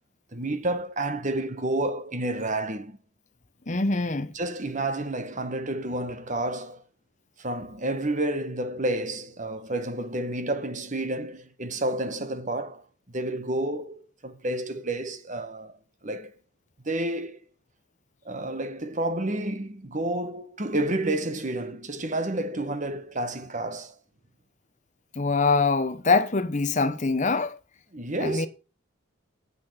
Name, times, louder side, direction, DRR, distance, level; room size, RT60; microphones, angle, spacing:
voice 1, 0.3-3.0 4.3-6.8 7.4-15.7 16.0-16.3 16.8-17.4 18.2-23.9 27.9-28.5, right 1 dB, 35° right, 1.3 m, -30 dB
voice 2, 3.7-4.3 25.2-27.6 28.2-28.5, left 3 dB, 35° left, 0.9 m, -24 dB
9.3 x 8.1 x 5.7 m
head